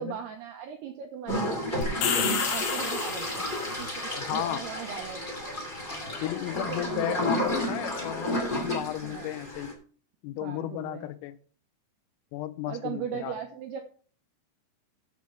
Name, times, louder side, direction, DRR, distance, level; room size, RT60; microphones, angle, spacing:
voice 1, 0.0-3.4 3.8-5.3 6.1-6.3 6.5-7.3 7.6-7.9 9.0-9.4 10.4-11.1 12.7-13.8, right 9 dB, 85° right, 2.3 m, -38 dB
sound 1, 1.3-9.7, left 1 dB, 25° left, 1.1 m, -32 dB
sound 2, 1.8-3.7, left 8 dB, 65° left, 2.8 m, -30 dB
voice 2, 4.2-4.7 6.2-9.7 10.2-11.4 12.3-13.4, left 14 dB, 90° left, 3.4 m, -34 dB
9.1 x 7.5 x 4.5 m
omnidirectional pair, 5.9 m